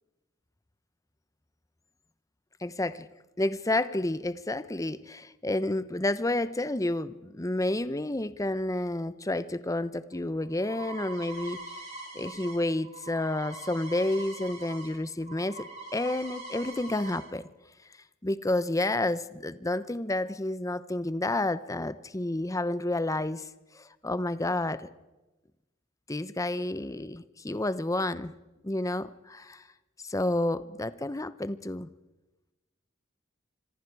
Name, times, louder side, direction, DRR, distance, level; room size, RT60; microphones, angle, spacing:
voice 1, 2.6-3.1 3.4-11.8 12.1-15.7 15.9-17.5 18.2-23.5 23.7-24.9 26.1-28.3 28.6-29.6 30.0-31.9, left 2 dB, 15° left, 15 dB, 0.8 m, -30 dB
sound 1, 10.1-14.9 15.2-17.2, right 2 dB, 35° right, 7.1 m, -43 dB
27.5 x 25.0 x 4.8 m, 1.1 s
head